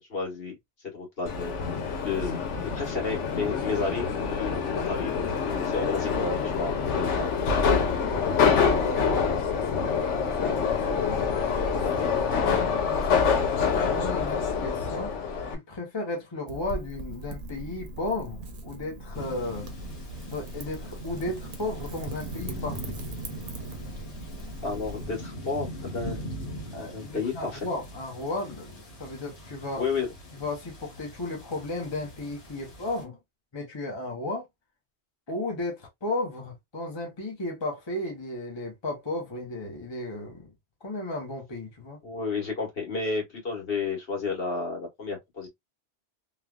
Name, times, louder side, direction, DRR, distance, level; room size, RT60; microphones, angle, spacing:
voice 1, 0.1-0.5 0.9-1.5 2.0-7.4 24.6-26.2 26.7-27.6 29.8-30.1 42.0-45.5, left 4 dB, 55° left, 1.6 m, -32 dB
Subway metro underground, 1.3-15.5, left 6 dB, 90° left, 1.1 m, -26 dB
voice 2, 8.7-15.2 15.5-19.7 20.2-23.0 26.7-29.8 30.3-33.2 33.5-34.5 35.3-40.5 40.8-42.0, left 2 dB, 25° left, 0.7 m, -35 dB
Wind / Fire, 16.5-25.1, right 2 dB, 50° right, 0.8 m, -40 dB
sound 1, 19.1-33.0, equal, 75° left, 1.4 m, -41 dB
3.2 x 2.2 x 2.3 m
omnidirectional pair, 1.2 m